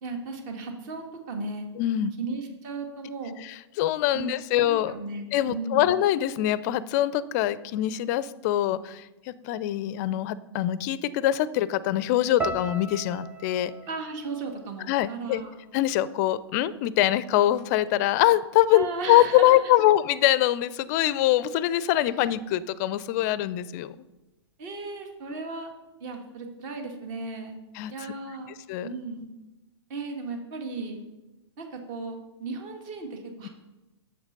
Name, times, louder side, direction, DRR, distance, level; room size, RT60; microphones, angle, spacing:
voice 1, 0.0-1.7 2.2-3.3 4.1-5.9 13.9-15.6 18.7-19.7 24.6-25.7 26.0-27.6 27.9-28.5 28.8-29.3 29.9-31.0 31.6-33.5, right 3 dB, 40° right, 4 dB, 1.8 m, -36 dB
voice 2, 1.8-2.1 3.4-5.0 5.3-13.7 14.9-15.4 15.7-24.0 27.7-27.9 28.7-28.9 33.4-33.5, left 13 dB, 35° left, 18 dB, 0.4 m, -24 dB
sound 1, 12.4-16.6 16.9-17.6 18.2-18.5, right 3 dB, 10° right, 0.7 m, -39 dB
7.9 x 7.1 x 5.4 m, 1.0 s
figure-of-eight pair, 115°, 15 cm